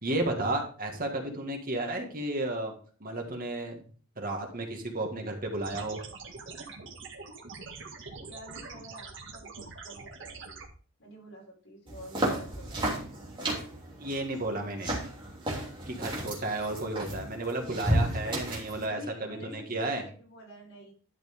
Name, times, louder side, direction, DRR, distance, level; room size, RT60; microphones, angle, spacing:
voice 1, 0.0-2.7 3.0-3.8 4.2-6.0 14.0-14.9 15.9-20.0, right 2 dB, 45° right, 2 dB, 1.9 m, -33 dB
sound 1, 5.6-10.6, right 4 dB, 60° right, 1.7 m, -44 dB
voice 2, 8.3-10.4 11.0-12.9 18.7-20.9, equal, 75° left, -2 dB, 5.2 m, -48 dB
sound 2, 11.9-18.9, right 1 dB, 25° right, 2.9 m, -33 dB
11.5 x 6.0 x 3.6 m, 0.41 s
head